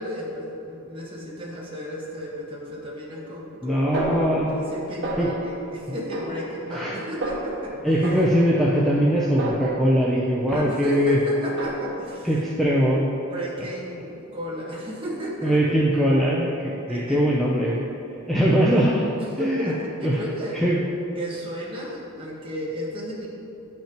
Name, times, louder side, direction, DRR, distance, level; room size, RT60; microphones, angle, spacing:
voice 1, 0.0-4.0 4.3-7.9 10.5-12.3 13.3-15.8 16.9-17.2 18.7-20.6 21.2-23.3, equal, 25° right, -5 dB, 1.3 m, -33 dB
voice 2, 3.6-4.6 5.2-5.3 6.7-7.0 7.8-11.2 12.2-13.1 15.4-17.8 18.3-19.0 19.4-19.7 20.0-20.2 20.5-20.8, equal, ahead, -5 dB, 0.5 m, -21 dB
Snare drum, 3.9-4.8 5.0-5.6 6.1-6.9 7.2-7.6 8.0-10.1 10.5-11.0 11.4-12.1, right 2 dB, 55° right, 1.7 m, -32 dB
10.0 x 5.7 x 3.0 m, 2.9 s
head